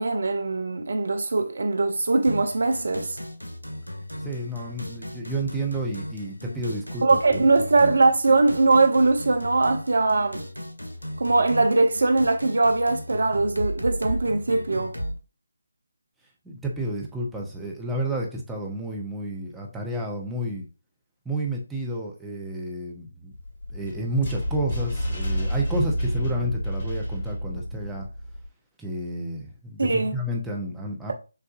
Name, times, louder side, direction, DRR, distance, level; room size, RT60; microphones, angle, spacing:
voice 1, 0.0-3.2 7.0-10.4 11.2-14.9 29.8-30.2, right 3 dB, 60° right, 0.6 m, -21 dB
sound 1, 2.2-15.2, equal, 85° left, 0.8 m, -36 dB
voice 2, 4.2-7.4 7.8-7.9 16.4-20.6 21.2-23.3 23.7-28.1 28.8-31.1, right 1 dB, 5° right, 0.8 m, -31 dB
sound 2, 23.3-28.5, equal, 35° left, 2.3 m, -29 dB
6.5 x 2.5 x 2.5 m
figure-of-eight pair, 150°, 0 cm